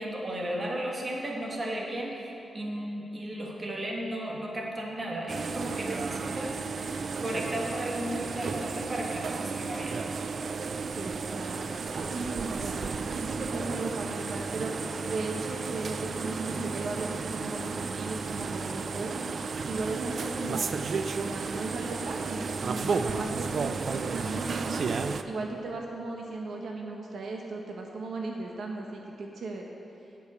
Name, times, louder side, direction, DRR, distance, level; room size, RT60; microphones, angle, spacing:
voice 1, 0.0-10.0, right 1 dB, 25° right, -1 dB, 1.4 m, -35 dB
sound 1, 5.3-25.2, right 4 dB, 50° right, 0.4 m, -33 dB
voice 2, 10.9-14.7 15.1-20.8 21.1-23.7 24.0-29.6, right 3 dB, 70° right, 0 dB, 0.9 m, -36 dB
8.2 x 6.4 x 8.3 m, 3.0 s
wide cardioid pair, 155°, 0 cm